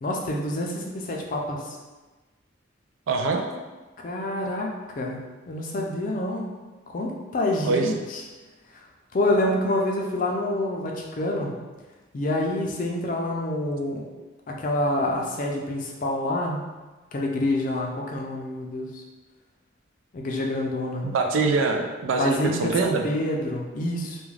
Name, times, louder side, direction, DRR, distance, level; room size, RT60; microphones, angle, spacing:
voice 1, 0.0-1.8 4.0-5.2 5.5-6.5 6.9-8.2 8.7-8.9 9.1-11.5 12.1-14.0 14.5-16.6 17.1-19.0 20.1-21.1 22.1-24.2, left 1 dB, 45° left, 0 dB, 0.4 m, -27 dB
voice 2, 3.1-3.4 7.6-7.9 21.0-23.0, right 4 dB, 85° right, 4 dB, 0.4 m, -24 dB
2.4 x 2.2 x 3.2 m, 1.2 s
head